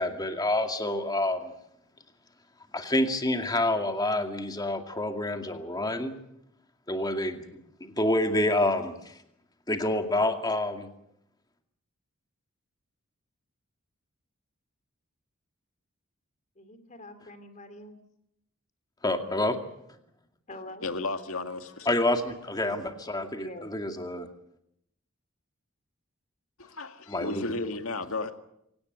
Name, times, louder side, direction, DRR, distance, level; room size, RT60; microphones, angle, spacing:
voice 1, 0.0-1.5 2.7-6.1 6.9-7.4 7.8-9.2 9.7-10.9 19.0-19.6 21.9-24.3 27.1-27.4, left 1 dB, 20° left, 2.3 m, -28 dB
voice 2, 16.6-18.0 20.5-20.9 22.6-23.0 23.3-23.8, left 1 dB, 35° left, 2.9 m, -44 dB
voice 3, 20.8-22.0 26.6-28.4, left 3 dB, 80° left, 2.0 m, -33 dB
25.5 x 18.0 x 8.2 m
head